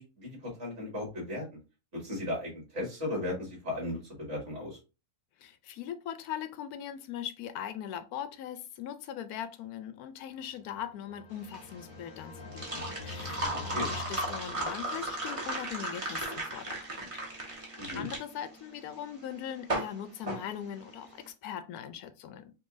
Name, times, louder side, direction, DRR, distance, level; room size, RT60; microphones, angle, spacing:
voice 1, 0.0-1.4 1.9-4.8 13.4-13.9 17.8-18.1, left 1 dB, 50° right, 2.7 m, -36 dB
voice 2, 5.4-22.5, left 9 dB, 85° left, 1.1 m, -41 dB
sound 1, 10.6-15.1, left 3 dB, 50° left, 0.6 m, -45 dB
sound 2, 11.3-21.2, right 1 dB, 25° right, 1.2 m, -36 dB
5.5 x 3.1 x 2.6 m
omnidirectional pair, 1.6 m